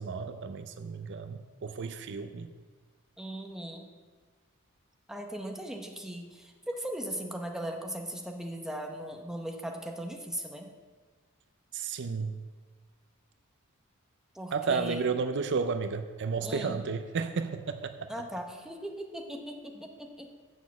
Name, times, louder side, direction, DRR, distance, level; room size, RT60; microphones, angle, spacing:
voice 1, 0.0-2.5 11.7-12.4 14.5-18.1, right 5 dB, 55° right, 9 dB, 0.4 m, -32 dB
voice 2, 3.2-3.9 5.1-10.7 14.3-15.1 16.4-16.8 18.1-20.3, right 1 dB, ahead, 2 dB, 0.8 m, -38 dB
6.9 x 6.2 x 7.1 m, 1.4 s
head